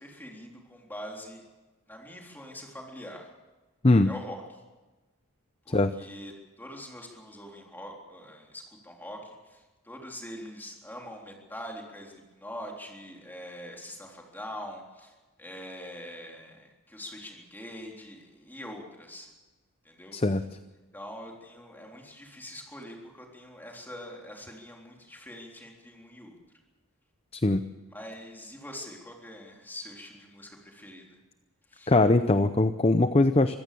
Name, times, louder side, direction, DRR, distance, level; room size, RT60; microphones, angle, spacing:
voice 1, 0.0-1.4 1.9-3.3 4.1-4.4 5.7-19.3 19.8-20.2 20.9-26.4 27.9-31.2 31.7-31.9, equal, 10° left, 0 dB, 3.7 m, -44 dB
voice 2, 20.1-20.4 27.3-27.6 31.9-33.6, left 2 dB, 30° left, 10 dB, 0.6 m, -21 dB
24.5 x 15.5 x 7.0 m, 1.2 s
head